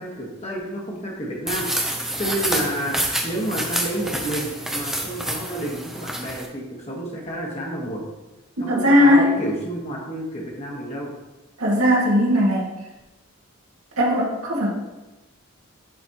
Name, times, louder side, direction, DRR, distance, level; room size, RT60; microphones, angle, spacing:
voice 1, 0.0-8.0 8.6-11.1, right 1 dB, 30° left, -2 dB, 1.3 m, -30 dB
sound 1, 1.5-6.5, right 1 dB, ahead, 0.5 m, -28 dB
voice 2, 8.6-9.3 11.6-12.7 14.0-14.7, left 1 dB, 85° right, -4 dB, 2.0 m, -18 dB
11.0 x 4.1 x 2.9 m, 1.0 s
head